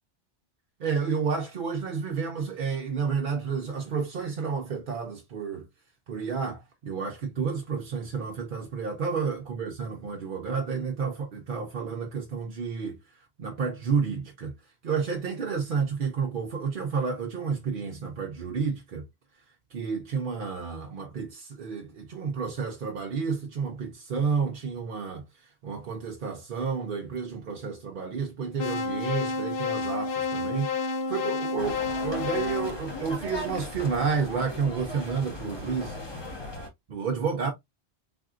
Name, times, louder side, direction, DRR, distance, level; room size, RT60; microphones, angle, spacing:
voice 1, 0.8-5.7 6.1-13.0 13.4-14.5 14.8-19.1 19.7-36.0 36.9-37.5, right 5 dB, 55° right, 0.7 m, -30 dB
sound 1, 28.6-33.7, left 4 dB, 60° left, 0.7 m, -30 dB
sound 2, 31.6-36.7, left 2 dB, 25° left, 0.9 m, -38 dB
3.4 x 2.6 x 2.4 m
omnidirectional pair, 1.2 m